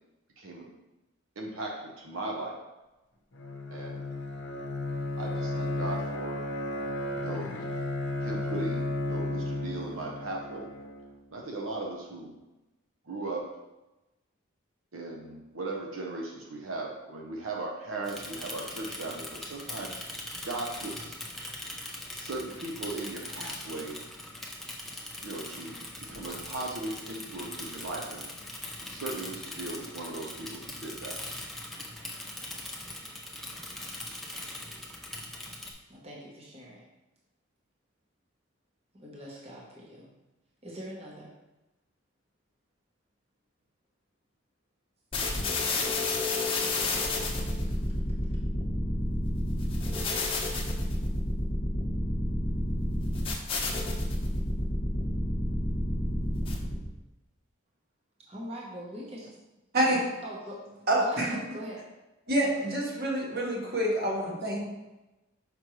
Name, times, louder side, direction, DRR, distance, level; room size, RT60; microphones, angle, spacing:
voice 1, 0.4-0.7 1.4-2.6 3.7-4.0 5.2-6.4 7.2-7.8 8.2-10.7 11.3-12.3 13.0-13.5 14.9-21.2 22.1-24.0 25.2-28.3 28.9-31.2, right 2 dB, 75° right, -1 dB, 0.8 m, -38 dB
Bowed string instrument, 3.3-11.2, left 2 dB, 55° left, 0.8 m, -33 dB
Bicycle / Mechanisms, 18.0-35.7, left 1 dB, ahead, 0.5 m, -41 dB
voice 2, 35.9-36.8 38.9-40.1 40.6-41.3 47.6-47.9 48.3-48.4 58.3-59.3 60.2-60.6 61.0-61.8, equal, 30° right, -4 dB, 0.9 m, -42 dB
sound 1, 45.1-56.9, left 1 dB, 25° left, 0.9 m, -30 dB
voice 3, 59.7-60.0 60.9-61.4 62.3-64.6, right 1 dB, 50° right, -3 dB, 1.4 m, -27 dB
6.0 x 5.1 x 3.1 m, 1.0 s
head